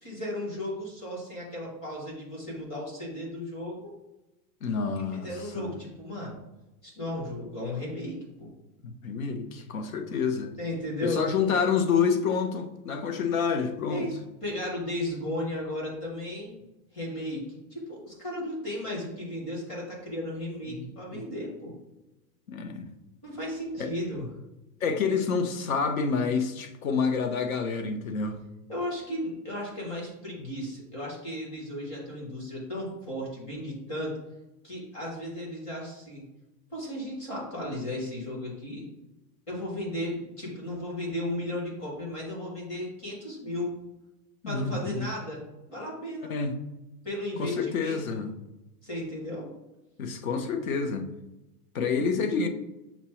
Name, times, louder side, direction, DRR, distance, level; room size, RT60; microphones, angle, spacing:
voice 1, 0.0-3.9 5.1-6.4 6.8-8.5 10.6-11.2 13.9-16.5 16.9-21.8 23.2-24.3 28.7-34.2 34.6-36.2 36.7-38.8 39.5-43.7 44.5-45.4 45.7-46.3 47.0-48.2 48.8-49.5, left 1 dB, 20° left, -3 dB, 1.0 m, -35 dB
voice 2, 4.6-5.3 5.5-5.7 8.8-10.5 11.0-14.1 20.7-20.9 22.5-22.9 23.8-23.9 24.8-28.4 44.4-45.1 46.3-46.6 47.4-48.3 50.0-51.1 51.7-52.5, left 5 dB, 60° left, 7 dB, 0.7 m, -28 dB
5.8 x 2.0 x 4.3 m, 0.97 s
supercardioid pair, 180°, 47 cm